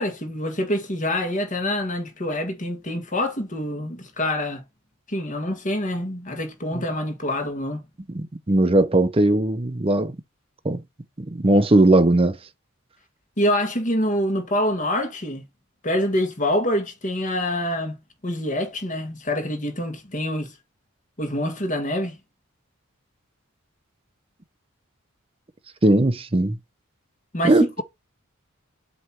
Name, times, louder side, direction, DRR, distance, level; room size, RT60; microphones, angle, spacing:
voice 1, 0.0-4.6 5.1-7.9 13.4-15.4 15.8-20.5 21.2-22.2 27.3-27.8, left 1 dB, 35° left, 1.7 m, -26 dB
voice 2, 8.1-10.2 10.6-10.8 11.2-12.3 25.8-26.6 27.4-27.8, right 2 dB, 25° right, 0.6 m, -19 dB
7.9 x 3.0 x 4.3 m
head